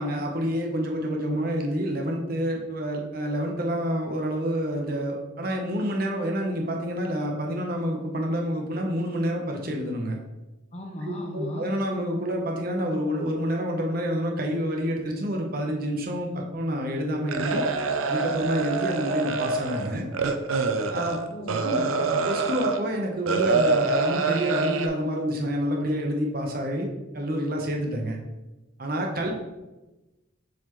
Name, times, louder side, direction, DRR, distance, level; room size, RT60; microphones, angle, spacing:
voice 1, 0.0-10.2 11.0-17.6 18.0-20.1 20.9-21.2 21.6-21.8 22.2-26.9 27.1-28.2 28.8-29.3, equal, 45° right, 1 dB, 0.9 m, -28 dB
voice 2, 10.7-11.7 21.3-22.2, left 1 dB, 30° left, 2 dB, 0.7 m, -36 dB
sound 1, 17.3-22.8 23.3-24.9, right 4 dB, 90° right, 0.5 m, -26 dB
7.1 x 4.3 x 3.0 m, 1.1 s
head